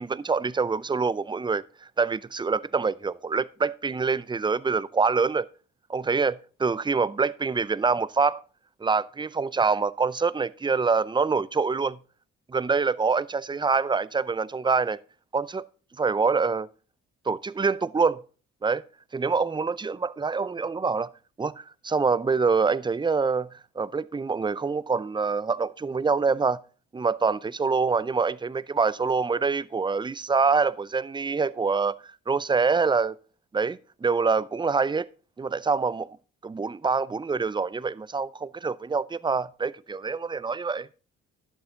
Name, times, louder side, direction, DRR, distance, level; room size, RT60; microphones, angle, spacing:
voice 1, 0.0-1.6 2.0-5.5 5.9-8.4 8.8-12.0 12.5-15.0 15.3-15.6 16.0-16.7 17.3-18.2 18.6-18.8 19.1-21.1 21.4-23.5 23.8-26.6 26.9-32.0 32.3-33.1 33.5-35.0 35.4-36.1 36.4-40.9, right 4 dB, 15° right, 0.5 m, -25 dB
11.5 x 7.2 x 3.8 m
hypercardioid pair, 45°, 37 cm